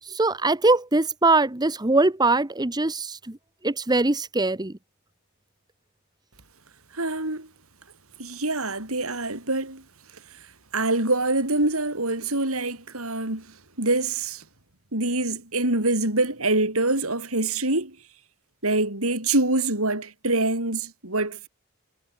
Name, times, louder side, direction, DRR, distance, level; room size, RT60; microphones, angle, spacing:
voice 1, 0.0-3.4 3.6-4.7, right 2 dB, 20° right, 1.0 m, -22 dB
voice 2, 6.9-7.5 8.2-9.8 10.7-13.5 13.8-14.4 14.9-18.0 18.6-21.5, right 2 dB, 70° right, 7.6 m, -25 dB
head